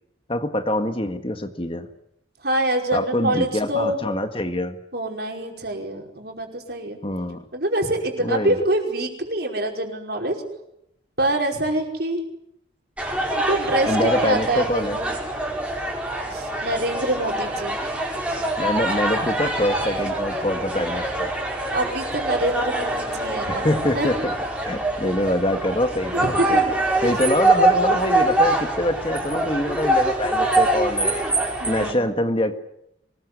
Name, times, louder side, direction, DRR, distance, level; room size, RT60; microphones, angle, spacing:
voice 1, 0.3-1.9 2.9-4.7 7.0-7.4 8.2-8.6 13.9-15.0 18.6-21.3 23.5-24.4 24.6-26.6 27.0-31.2 31.7-32.5, left 1 dB, 30° left, 7 dB, 1.7 m, -24 dB
voice 2, 2.4-4.0 4.9-7.0 7.5-10.4 11.2-12.2 13.5-15.1 16.3-17.8 21.7-24.1 25.0-25.1 26.1-26.7 31.6-32.2, right 1 dB, 55° right, 2 dB, 5.3 m, -25 dB
sound 1, 13.0-31.9, right 1 dB, 5° right, 4.9 m, -24 dB
25.0 x 20.5 x 9.8 m, 0.79 s
head